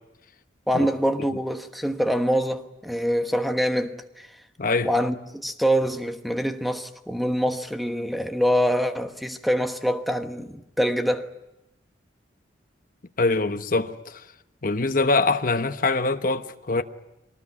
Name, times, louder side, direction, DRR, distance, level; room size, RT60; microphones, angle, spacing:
voice 1, 0.7-4.3 4.8-11.3, equal, ahead, 1.2 m, -25 dB
voice 2, 4.6-4.9 13.2-14.2 14.6-16.8, left 3 dB, 45° left, 1.0 m, -23 dB
23.5 x 19.5 x 9.6 m
head